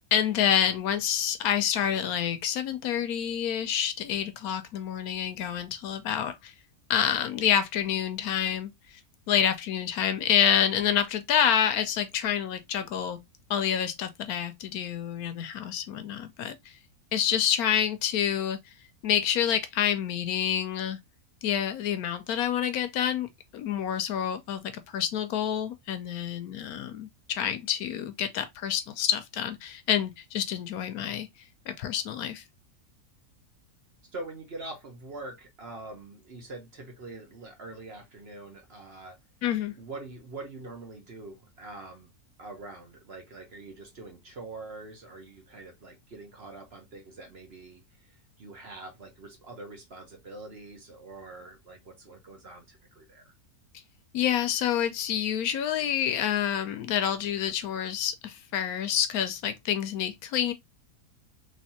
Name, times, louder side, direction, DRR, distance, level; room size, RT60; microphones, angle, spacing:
voice 1, 0.1-6.5 6.9-8.7 9.3-13.2 13.5-16.6 17.1-18.6 19.0-21.0 21.4-31.3 31.7-32.4 39.4-39.7 54.1-60.5, left 9 dB, 75° left, 1.1 m, -28 dB
voice 2, 34.1-39.2 39.8-42.1 42.4-53.3, right 2 dB, 45° right, 1.1 m, -44 dB
3.2 x 3.2 x 2.7 m
omnidirectional pair, 1.6 m